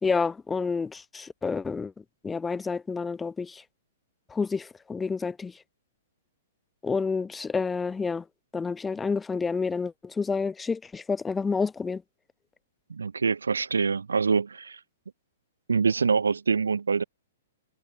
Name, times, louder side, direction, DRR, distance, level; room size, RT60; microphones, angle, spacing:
voice 1, 0.0-1.9 2.2-3.6 4.3-5.5 6.8-8.2 8.5-12.0, left 5 dB, 10° left, 0.9 m, -29 dB
voice 2, 12.9-14.8 15.7-17.0, right 5 dB, 70° right, 0.6 m, -25 dB
figure-of-eight pair, 115°, 0 cm